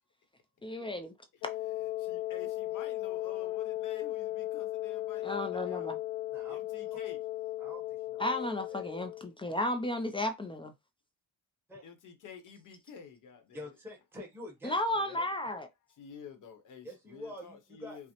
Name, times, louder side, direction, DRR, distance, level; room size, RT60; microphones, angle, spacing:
voice 1, 0.6-1.1 5.2-6.0 8.2-10.7 14.6-15.7, left 1 dB, 15° left, 0.3 m, -33 dB
Wind instrument woodwind instrument, 1.4-9.3, left 15 dB, 85° left, 0.6 m, -36 dB
voice 2, 2.0-5.9 6.5-7.2 11.8-13.7 16.0-18.1, left 7 dB, 60° left, 0.9 m, -50 dB
voice 3, 7.6-8.3 8.7-8.8 11.7-11.8 13.5-15.3 16.8-18.0, left 1 dB, 5° right, 1.1 m, -47 dB
5.5 x 2.0 x 2.9 m
cardioid pair, 165°, 36 cm